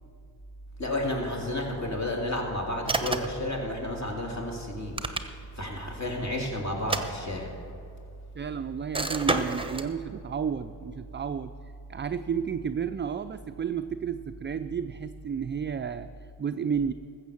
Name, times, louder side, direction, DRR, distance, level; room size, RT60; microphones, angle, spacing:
voice 1, 0.8-5.0 5.6-7.5, left 1 dB, 40° left, 0 dB, 3.0 m, -31 dB
sound 1, 2.8-3.4 4.7-5.6 6.7-7.7 8.9-9.9, right 2 dB, 10° right, 0.9 m, -30 dB
voice 2, 8.4-11.5 11.9-16.1 16.4-16.9, right 7 dB, 25° right, 10 dB, 0.4 m, -32 dB
14.0 x 7.3 x 7.0 m, 2.5 s
cardioid pair, 50°, 44 cm